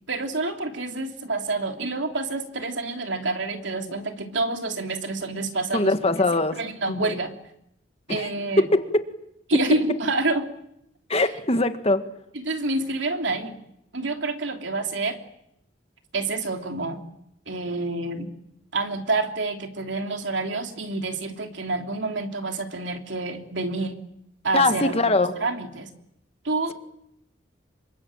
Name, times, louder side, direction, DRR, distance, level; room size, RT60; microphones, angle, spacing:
voice 1, 0.1-7.3 8.1-8.7 9.5-10.5 11.1-11.2 12.3-13.6 13.9-15.2 16.1-17.0 17.5-18.3 18.7-23.9 24.4-25.9 26.4-26.7, right 2 dB, 70° right, 5 dB, 3.2 m, -28 dB
voice 2, 5.7-6.6 6.9-7.1 8.1-8.3 8.6-8.8 11.1-12.1 24.5-25.3, left 2 dB, 30° left, 9 dB, 1.7 m, -22 dB
27.5 x 24.0 x 9.0 m, 0.78 s
head